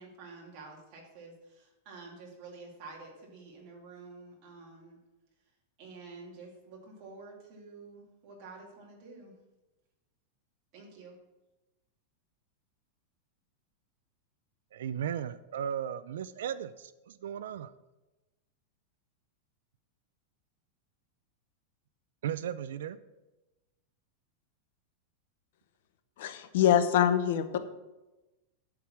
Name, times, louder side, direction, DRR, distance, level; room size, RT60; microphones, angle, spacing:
voice 1, 0.0-5.0 5.8-9.3 10.7-11.2, right 3 dB, 35° right, -1 dB, 2.4 m, -49 dB
voice 2, 14.7-17.7 22.2-23.0, right 9 dB, 90° right, 15 dB, 0.4 m, -36 dB
voice 3, 26.2-27.6, left 9 dB, 60° left, 10 dB, 0.8 m, -25 dB
10.5 x 4.7 x 7.3 m, 1.1 s
supercardioid pair, 175°, 0 cm